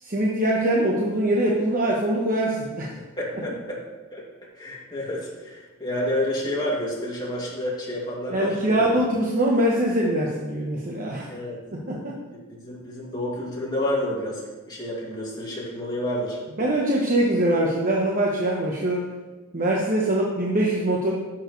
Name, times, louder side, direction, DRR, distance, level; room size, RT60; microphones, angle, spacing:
voice 1, 0.0-2.9 8.3-11.3 11.7-12.2 16.6-19.0 19.5-21.1, right 1 dB, 40° right, -3 dB, 1.1 m, -23 dB
voice 2, 3.2-3.8 4.1-4.2 4.5-8.9 11.3-11.6 12.5-14.4 14.7-16.4, left 1 dB, 20° left, -5 dB, 2.6 m, -29 dB
11.5 x 7.3 x 3.3 m, 1.2 s
head